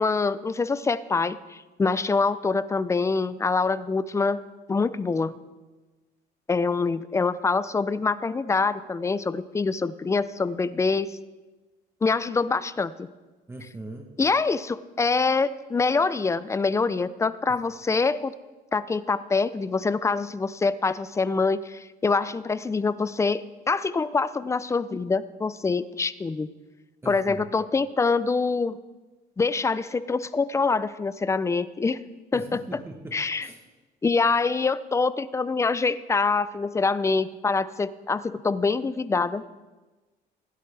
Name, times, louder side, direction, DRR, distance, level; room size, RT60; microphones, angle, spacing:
voice 1, 0.0-4.4 4.7-5.3 6.5-11.2 12.0-12.9 14.2-18.3 18.7-26.5 27.1-28.8 29.4-32.0 32.3-32.8 33.1-33.5 34.0-39.4, left 4 dB, 15° left, 16 dB, 0.4 m, -25 dB
voice 2, 13.5-14.0 17.5-17.6 27.0-27.4 32.3-33.1 33.4-33.6, right 2 dB, 15° right, 3 dB, 1.0 m, -40 dB
16.0 x 10.0 x 3.3 m, 1.2 s
cardioid pair, 110°, 17 cm